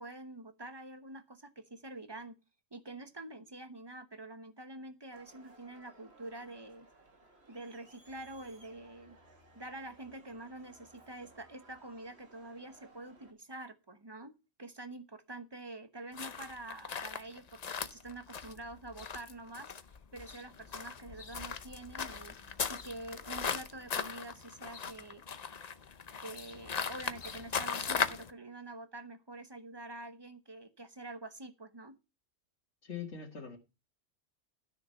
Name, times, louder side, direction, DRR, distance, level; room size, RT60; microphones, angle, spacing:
voice 1, 0.0-2.4 2.7-6.9 7.5-9.2 9.5-14.3 14.6-19.7 20.1-22.4 22.7-25.2 26.2-32.0, right 2 dB, 25° right, 10 dB, 0.9 m, -46 dB
Crowd, 5.1-13.3, right 2 dB, 60° right, 2.5 m, -60 dB
sound 1, 16.1-28.3, left 6 dB, 40° left, 0.7 m, -38 dB
voice 2, 32.8-33.6, left 7 dB, 70° left, -1 dB, 2.0 m, -42 dB
12.5 x 6.5 x 5.5 m, 0.28 s
omnidirectional pair, 1.2 m